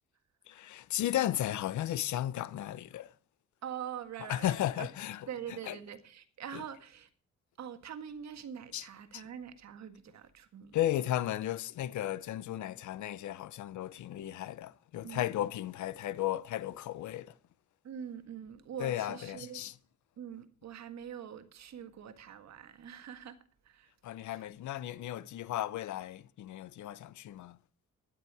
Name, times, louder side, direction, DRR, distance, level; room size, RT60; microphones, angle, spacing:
voice 1, 0.5-3.1 4.3-5.8 6.5-6.7 8.7-8.9 9.1-9.2 10.7-17.3 18.8-19.7 24.0-27.6, left 13 dB, 70° left, 0.8 m, -35 dB
voice 2, 3.6-4.9 5.3-7.1 7.6-10.7 15.0-15.3 17.8-19.6 20.2-23.4 23.6-23.9 24.2-24.4, right 9 dB, 65° right, 1.7 m, -44 dB
13.0 x 11.0 x 4.8 m
cardioid pair, 90°, 30 cm